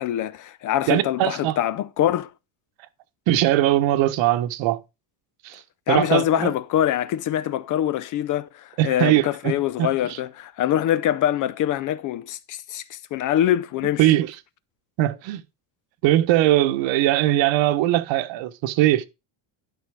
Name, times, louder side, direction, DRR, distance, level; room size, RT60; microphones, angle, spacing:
voice 1, 0.0-2.3 5.9-14.1, left 11 dB, 40° left, 0.4 m, -24 dB
voice 2, 0.9-1.6 3.3-4.8 5.4-5.6 5.9-6.5 8.8-9.9 14.0-14.3 15.0-15.4 16.0-19.1, right 14 dB, 65° right, 1.1 m, -20 dB
12.0 x 5.4 x 4.8 m
cardioid pair, 150°, 50 cm